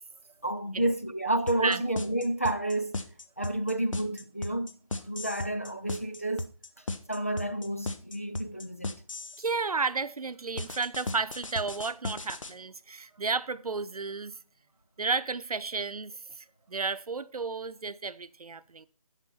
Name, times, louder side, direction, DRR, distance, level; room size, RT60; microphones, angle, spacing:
voice 1, 0.4-3.0 3.4-4.7 5.0-6.5 7.1-8.9, right 1 dB, 25° left, 0.4 m, -30 dB
sound 1, 1.5-9.5 10.6-12.5, left 2 dB, 60° left, 1.3 m, -36 dB
voice 2, 9.4-14.4 15.0-18.9, right 4 dB, 85° right, 0.8 m, -32 dB
11.0 x 5.7 x 5.6 m
figure-of-eight pair, 175°, 19 cm